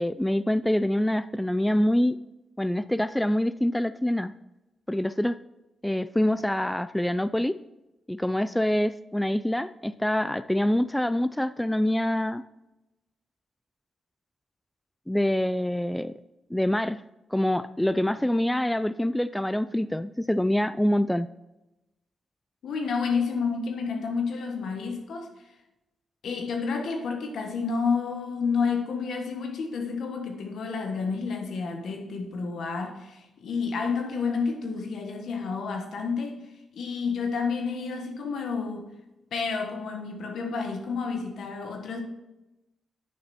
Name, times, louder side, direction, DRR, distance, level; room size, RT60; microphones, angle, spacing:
voice 1, 0.0-2.2 2.6-4.3 4.9-5.4 5.8-7.6 8.1-12.4 15.1-16.2 16.5-17.0 17.3-21.3, left 1 dB, 10° left, 0.4 m, -25 dB
voice 2, 22.6-25.3 26.2-36.4 36.7-38.9 39.3-42.0, left 5 dB, 75° left, 1.5 m, -30 dB
9.6 x 6.6 x 4.3 m
supercardioid pair, 55°, 0 cm